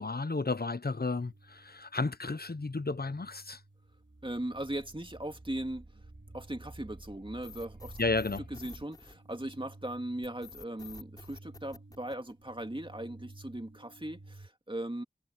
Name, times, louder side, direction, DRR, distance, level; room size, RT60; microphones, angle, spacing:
voice 1, 0.0-3.6 8.0-8.4, left 3 dB, 55° left, 0.9 m, -32 dB
sound 1, 1.2-14.5, right 2 dB, 85° right, 4.9 m, -56 dB
sound 2, 3.9-8.9, right 2 dB, 55° right, 5.9 m, -51 dB
voice 2, 4.2-5.8 6.3-8.0 8.6-15.0, right 1 dB, 25° right, 2.4 m, -38 dB
sound 3, 7.4-9.7 10.2-12.7, left 4 dB, 20° left, 4.2 m, -50 dB
wide cardioid pair, 40°, 19 cm